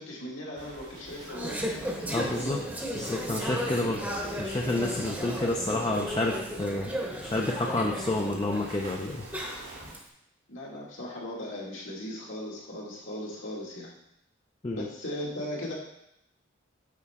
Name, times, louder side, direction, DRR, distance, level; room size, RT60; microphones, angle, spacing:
voice 1, 0.0-1.6 5.2-5.3 10.5-13.9 14.7-15.8, left 1 dB, 75° left, -4 dB, 2.1 m, -38 dB
sound 1, 0.6-9.9, right 1 dB, 80° right, 2.2 m, -47 dB
Conversation / Chatter, 1.1-10.0, equal, 10° right, 0.9 m, -35 dB
voice 2, 2.1-2.6 2.9-4.0 4.4-6.9 7.2-9.3 14.6-14.9, left 2 dB, 25° left, 0 dB, 0.5 m, -29 dB
8.4 x 4.5 x 3.6 m, 0.81 s
head